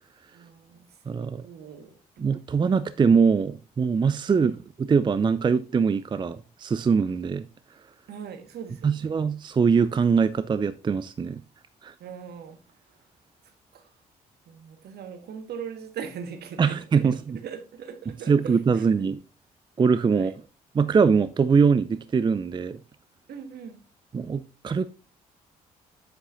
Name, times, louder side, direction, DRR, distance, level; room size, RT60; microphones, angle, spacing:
voice 1, 0.3-0.8 1.4-2.3 4.3-4.6 8.1-9.1 12.0-12.6 13.7-13.9 14.5-17.1 17.4-18.9 20.1-20.3 23.3-23.8, right 7 dB, 60° right, 1.4 m, -40 dB
voice 2, 1.1-1.4 2.2-4.5 4.8-7.5 8.8-11.4 11.8-11.9 16.6-17.4 18.3-19.2 19.8-20.3 20.7-22.8 24.1-24.9, right 5 dB, 25° right, 0.4 m, -22 dB
8.2 x 7.8 x 2.5 m
hypercardioid pair, 45°, 19 cm